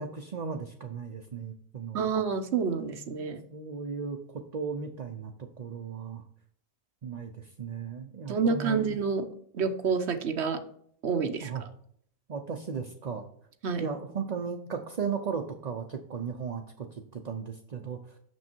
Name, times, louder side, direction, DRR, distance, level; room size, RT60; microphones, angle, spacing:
voice 1, 0.0-2.1 3.5-6.2 7.0-8.8 11.4-11.6 12.3-13.3 13.8-18.2, right 6 dB, 45° right, 4 dB, 0.7 m, -36 dB
voice 2, 1.9-3.4 8.3-9.2 9.5-10.6 11.0-11.5 13.6-13.9, right 5 dB, 85° right, 8 dB, 1.2 m, -28 dB
6.4 x 6.3 x 4.4 m, 0.64 s
omnidirectional pair, 1.1 m